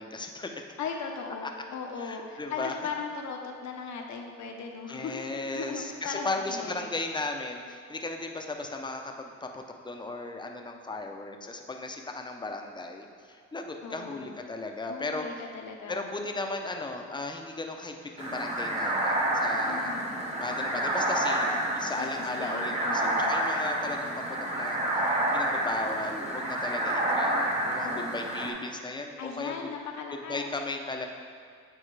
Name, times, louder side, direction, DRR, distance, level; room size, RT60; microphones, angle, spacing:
voice 1, 0.0-0.6 1.4-1.5 2.0-2.7 4.9-15.3 15.9-19.9 20.4-21.5 21.7-24.8 25.0-29.7 30.3-31.1, left 2 dB, 15° left, 3 dB, 0.6 m, -36 dB
voice 2, 0.8-5.2 5.5-6.8 13.8-14.4 14.9-16.0 19.7-20.2 21.9-23.4 27.8-28.1 29.2-30.5, left 5 dB, 65° left, 2 dB, 0.9 m, -38 dB
sound 1, 18.2-28.5, right 1 dB, 20° right, 1.0 m, -29 dB
8.7 x 4.1 x 3.3 m, 2.3 s
cardioid pair, 90°, 30 cm